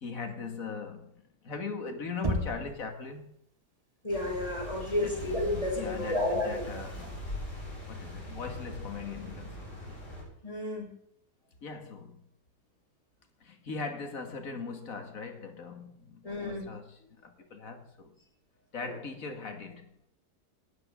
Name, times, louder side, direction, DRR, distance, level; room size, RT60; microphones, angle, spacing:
voice 1, 0.0-1.1 1.4-3.3 5.0-5.1 5.7-7.2 7.9-10.0 11.6-12.2 13.4-18.1 18.7-19.9, left 4 dB, 55° left, 2.4 m, -40 dB
Knock, 2.2-2.9, equal, 25° right, 1.6 m, -31 dB
voice 2, 4.0-6.6 10.4-10.9 16.2-16.7 18.8-19.0, left 1 dB, 20° left, 5.7 m, -31 dB
sound 1, 4.1-10.2, left 1 dB, 85° left, 8.2 m, -41 dB
19.0 x 12.5 x 3.7 m
omnidirectional pair, 1.8 m